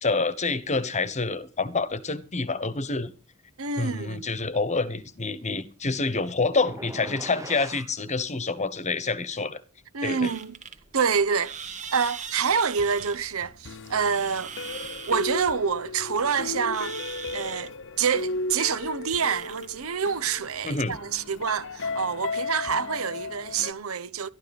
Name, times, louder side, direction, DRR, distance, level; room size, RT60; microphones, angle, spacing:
voice 1, 0.0-3.1 3.8-9.6 10.0-10.3 20.6-21.0, left 3 dB, 30° left, 1.2 m, -27 dB
voice 2, 3.6-4.3 9.9-10.5 10.9-11.6 11.9-14.5 15.1-17.0 17.3-17.7 18.0-24.3, right 6 dB, 65° right, 0.9 m, -27 dB
sound 1, 6.7-7.9, right 2 dB, 15° right, 0.9 m, -40 dB
sound 2, 10.2-22.0, right 6 dB, 35° right, 1.7 m, -42 dB
sound 3, 12.8-23.7, left 3 dB, 60° left, 0.9 m, -35 dB
12.5 x 12.5 x 5.3 m
head